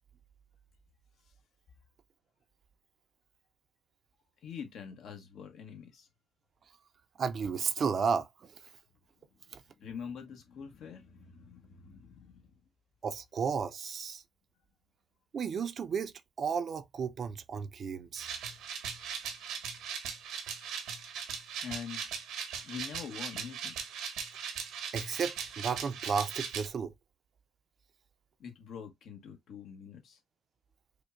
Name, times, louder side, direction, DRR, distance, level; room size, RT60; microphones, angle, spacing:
voice 1, 4.4-6.1 9.8-12.5 21.6-22.1 22.6-23.8 28.4-30.2, left 7 dB, 75° left, 1.0 m, -45 dB
voice 2, 7.2-8.5 13.0-14.2 15.3-16.1 16.4-18.3 24.9-26.9, right 6 dB, 55° right, 0.4 m, -33 dB
sound 1, 18.2-26.7, right 7 dB, 90° right, 0.9 m, -39 dB
5.0 x 2.1 x 2.5 m
cardioid pair, 90°, 0 cm